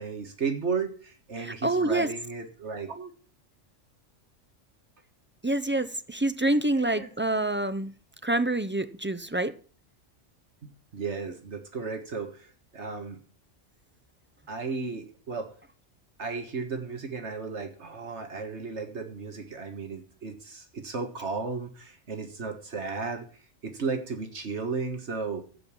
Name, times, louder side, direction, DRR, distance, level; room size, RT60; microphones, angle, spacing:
voice 1, 0.0-3.1 6.7-7.1 10.6-13.2 14.5-15.5 16.2-23.3 23.6-25.5, right 4 dB, 65° right, 1.8 m, -34 dB
voice 2, 1.4-2.1 5.4-7.9 8.2-9.5, right 2 dB, 20° right, 0.3 m, -27 dB
15.0 x 5.4 x 7.3 m
omnidirectional pair, 1.3 m